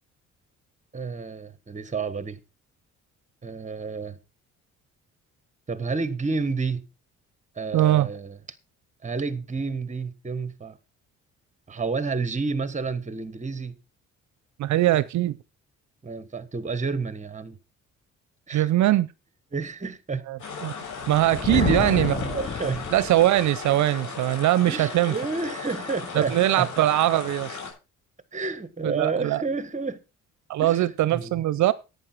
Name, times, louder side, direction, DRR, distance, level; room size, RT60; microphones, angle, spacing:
voice 1, 0.9-2.4 3.4-4.2 5.7-6.8 7.5-8.4 9.0-10.8 11.7-13.7 14.9-15.0 16.0-17.6 18.5-18.7 19.5-20.2 21.5-21.7 22.2-22.9 24.7-26.7 28.3-30.0 30.6-30.8 31.1-31.4, right 4 dB, 25° right, 1.6 m, -30 dB
voice 2, 7.7-8.1 14.6-15.4 18.5-19.1 20.3-20.8 21.1-22.4 22.9-25.1 26.1-27.6 28.8-29.4 30.5-31.7, right 14 dB, 70° right, 0.6 m, -22 dB
sound 1, 20.4-27.7, left 5 dB, 75° left, 6.0 m, -37 dB
Thunder, 21.0-23.4, left 7 dB, 30° left, 0.7 m, -29 dB
11.0 x 9.2 x 4.5 m
cardioid pair, 90°, 30 cm